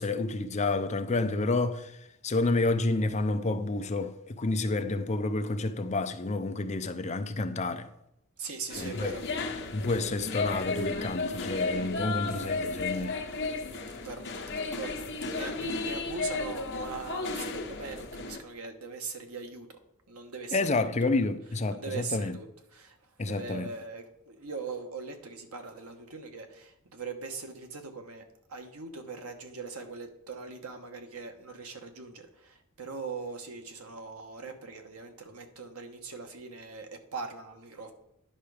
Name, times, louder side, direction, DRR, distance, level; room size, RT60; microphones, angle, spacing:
voice 1, 0.0-2.0 2.2-7.9 8.8-9.1 9.7-13.2 20.5-22.4 23.2-23.7, left 2 dB, 30° left, 0.5 m, -29 dB
voice 2, 8.4-9.2 14.0-14.2 14.6-15.1 15.3-19.8 20.1-21.1 21.7-22.9 23.2-28.2 28.5-37.9, right 4 dB, 85° right, 1.3 m, -41 dB
sound 1, 8.7-18.4, left 3 dB, 50° left, 1.2 m, -34 dB
10.0 x 5.9 x 4.9 m
head